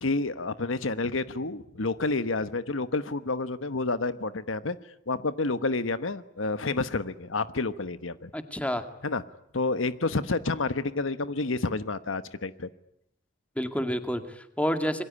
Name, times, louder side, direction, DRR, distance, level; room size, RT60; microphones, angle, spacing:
voice 1, 0.0-4.8 5.1-8.3 9.0-9.2 9.5-12.7, left 3 dB, 85° left, 13 dB, 1.1 m, -29 dB
voice 2, 8.3-8.8 13.6-15.0, equal, 5° left, 7 dB, 2.1 m, -29 dB
27.0 x 22.5 x 9.8 m, 0.76 s
head